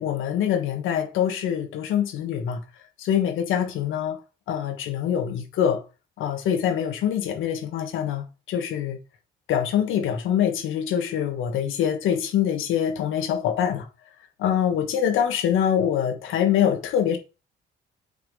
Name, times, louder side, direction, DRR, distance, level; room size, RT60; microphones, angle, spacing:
voice 1, 0.0-2.6 3.0-4.2 4.5-5.8 6.2-9.0 9.5-13.9 14.4-17.2, left 9 dB, 85° left, 1.4 m, -24 dB
5.8 x 3.7 x 4.8 m
cardioid pair, 90°, 20 cm